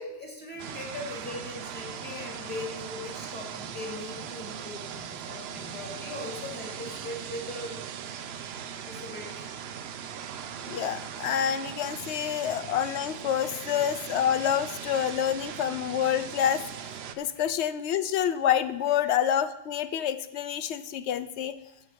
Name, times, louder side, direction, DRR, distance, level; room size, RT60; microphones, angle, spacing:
voice 1, 0.0-7.8 8.8-9.5 12.3-12.4 17.3-17.4 21.6-21.7, left 2 dB, 10° left, -1 dB, 2.4 m, -40 dB
sound 1, 0.6-17.2, right 8 dB, 75° right, 0.9 m, -39 dB
voice 2, 10.6-16.6 17.2-21.6, left 9 dB, 85° left, 12 dB, 0.9 m, -27 dB
14.5 x 6.3 x 4.5 m, 0.99 s
omnidirectional pair, 1.1 m